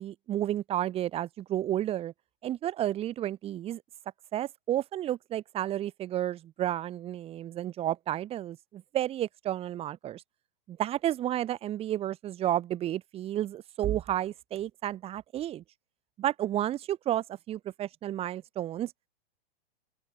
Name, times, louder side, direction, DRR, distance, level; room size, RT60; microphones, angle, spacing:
voice 1, 0.0-2.1 2.4-3.8 4.3-10.2 10.7-15.6 16.2-18.9, right 12 dB, 20° right, 6.6 m, -31 dB
open air
hypercardioid pair, 170°, 32 cm